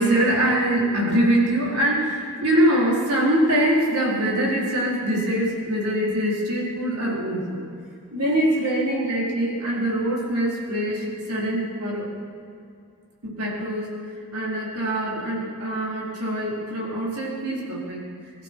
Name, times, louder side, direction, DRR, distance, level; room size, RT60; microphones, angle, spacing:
voice 1, 0.0-7.6 8.1-12.1 13.2-18.0, right 1 dB, 85° right, -3 dB, 4.2 m, -23 dB
21.0 x 14.0 x 4.6 m, 2.4 s
head